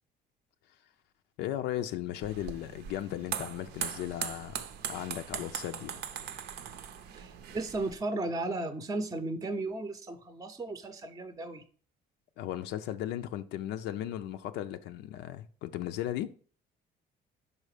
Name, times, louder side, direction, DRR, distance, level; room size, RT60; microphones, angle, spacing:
voice 1, 1.4-6.0 12.4-16.3, left 12 dB, 85° left, 0.4 m, -36 dB
sound 1, 2.2-7.9, right 8 dB, 70° right, 0.6 m, -40 dB
voice 2, 7.1-11.6, right 2 dB, 20° right, 0.6 m, -35 dB
5.4 x 4.8 x 4.9 m
cardioid pair, 110°, 17 cm